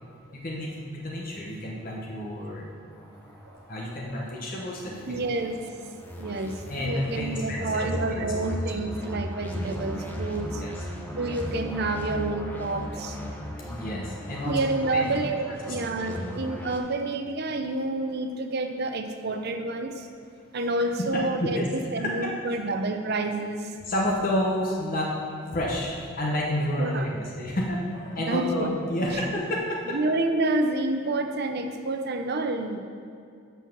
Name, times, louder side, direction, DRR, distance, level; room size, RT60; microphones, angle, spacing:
voice 1, 0.3-2.7 3.7-5.2 6.7-8.2 10.6-10.9 13.7-14.6 14.9-15.1 15.7-15.8 16.1-16.3 21.1-21.7 22.2-22.3 23.8-25.1 25.4-30.0, left 1 dB, 45° left, -3 dB, 1.1 m, -30 dB
sound 1, 2.9-16.8, left 1 dB, 10° left, 0.8 m, -36 dB
voice 2, 5.1-10.6 11.1-13.2 14.4-20.1 20.5-23.8 26.8-27.1 28.2-28.7 29.1-29.2 29.9-32.8, right 2 dB, 55° right, 6 dB, 0.6 m, -29 dB
7.3 x 5.7 x 5.9 m, 2.4 s
head